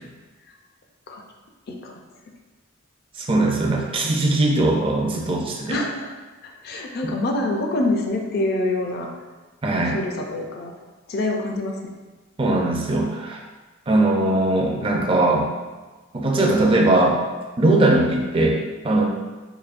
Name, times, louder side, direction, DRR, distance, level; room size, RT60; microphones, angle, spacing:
voice 1, 1.7-2.0 4.1-4.4 5.7-6.1 6.4-9.1 9.8-10.7 11.1-11.9, left 2 dB, 50° left, 1 dB, 0.4 m, -26 dB
voice 2, 3.2-5.8 9.6-10.0 12.4-13.4 13.9-15.5 16.1-17.2 17.6-19.1, right 2 dB, 25° right, 0 dB, 0.4 m, -20 dB
4.8 x 2.6 x 2.5 m, 1.3 s
head